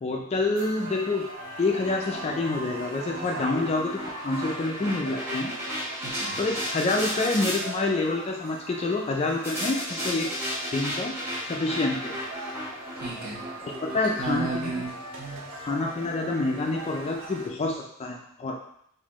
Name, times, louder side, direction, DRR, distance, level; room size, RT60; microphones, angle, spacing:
voice 1, 0.0-1.3 1.6-5.5 6.4-10.3 10.7-11.1 11.5-12.1 13.6-14.8 15.6-18.6, left 2 dB, 30° left, 1 dB, 0.3 m, -27 dB
sound 1, 0.6-17.5, right 2 dB, 60° right, 0.6 m, -40 dB
sound 2, 1.4-7.6 9.4-15.7, equal, 10° right, 0.9 m, -35 dB
voice 2, 6.0-6.4 12.9-13.4 13.9-15.4, right 3 dB, 45° right, -5 dB, 1.1 m, -33 dB
4.0 x 2.5 x 2.9 m, 0.69 s
head